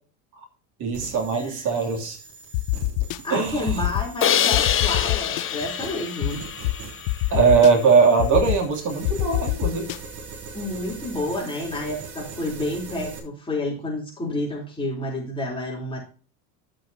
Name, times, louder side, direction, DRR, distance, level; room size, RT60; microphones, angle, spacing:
voice 1, 0.8-2.2 3.3-3.8 7.3-9.8, right 5 dB, 45° right, 3 dB, 3.0 m, -20 dB
sound 1, 0.9-13.2, right 5 dB, 65° right, 3.2 m, -41 dB
voice 2, 1.3-1.8 3.2-6.4 10.5-16.0, left 1 dB, 10° left, -3 dB, 3.7 m, -30 dB
sound 2, 2.5-3.2 3.7-4.0 4.5-5.4 6.2-6.3 6.6-6.7 7.1-7.7 8.2-8.6 9.0-10.0, left 21 dB, 75° left, 0.6 m, -24 dB
Crash cymbal, 4.2-7.3, left 9 dB, 30° left, 1.0 m, -25 dB
11.0 x 8.5 x 2.8 m, 0.38 s
supercardioid pair, 120°, 41 cm